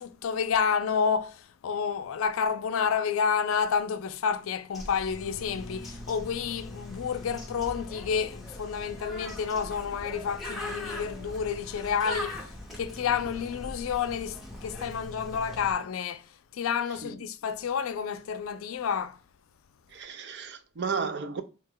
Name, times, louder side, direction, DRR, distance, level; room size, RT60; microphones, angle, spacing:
voice 1, 0.0-19.2, left 6 dB, 85° left, 0.4 m, -30 dB
Bird, 4.7-15.7, left 1 dB, ahead, 0.6 m, -41 dB
voice 2, 19.9-21.4, right 5 dB, 55° right, 0.4 m, -33 dB
3.4 x 2.1 x 3.6 m
head